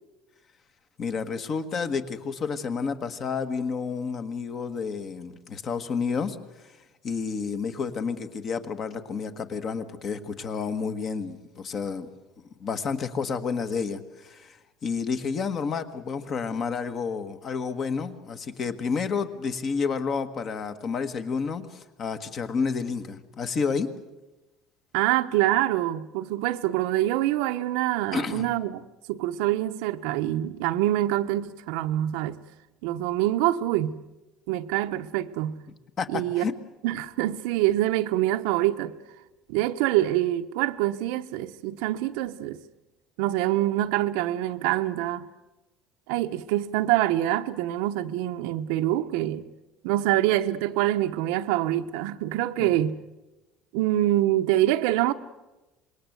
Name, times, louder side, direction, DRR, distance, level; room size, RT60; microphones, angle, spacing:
voice 1, 1.0-6.4 7.0-12.1 12.6-14.6 14.8-23.9 28.1-28.5 36.0-36.5 52.6-52.7, left 5 dB, 30° left, 1.5 m, -30 dB
voice 2, 24.9-32.4 32.8-34.0 34.5-35.6 36.1-36.5 36.8-38.9 39.5-42.6 43.2-45.3 46.1-49.4 49.8-53.0 53.7-55.1, right 14 dB, 85° right, 1.0 m, -25 dB
26.0 x 21.5 x 8.0 m
cardioid pair, 165°, 0 cm